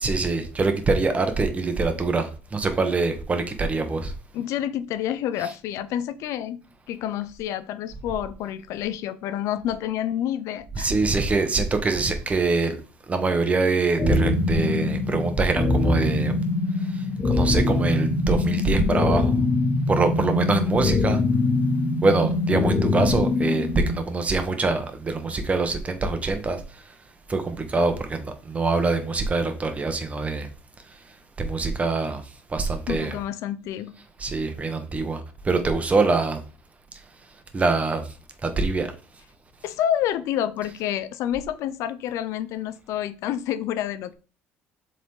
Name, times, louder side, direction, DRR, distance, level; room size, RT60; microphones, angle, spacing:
voice 1, 0.0-4.1 10.8-12.8 13.1-16.3 17.3-19.3 19.9-21.2 22.0-26.6 27.3-30.5 31.4-32.2 32.5-33.1 34.2-35.2 35.4-36.4 37.5-38.0 38.4-38.9, right 3 dB, 25° right, 1.5 m, -24 dB
voice 2, 4.3-6.6 6.9-10.9 32.9-33.9 39.6-44.1, left 10 dB, 75° left, 0.6 m, -28 dB
sound 1, 14.0-24.0, left 2 dB, 35° left, 2.7 m, -23 dB
7.5 x 4.1 x 3.8 m
cardioid pair, 105°, 5 cm